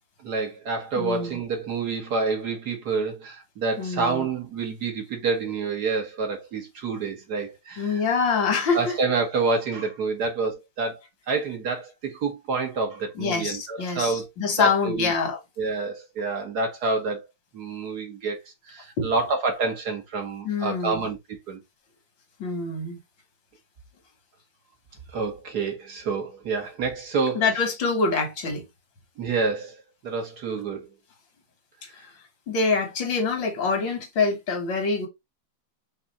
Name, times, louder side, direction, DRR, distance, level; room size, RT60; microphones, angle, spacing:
voice 1, 0.2-8.0 8.7-14.3 14.6-15.1 15.6-17.3 17.5-18.4 18.7-21.6 25.1-27.4 29.2-30.9, right 4 dB, 60° right, 1.8 m, -28 dB
voice 2, 1.0-1.3 3.8-4.3 7.8-9.0 13.2-15.4 19.0-19.1 20.4-21.0 22.4-23.0 27.4-28.6 32.0-32.1 32.5-35.1, left 4 dB, 90° left, 2.1 m, -25 dB
5.1 x 2.4 x 4.1 m
omnidirectional pair, 2.0 m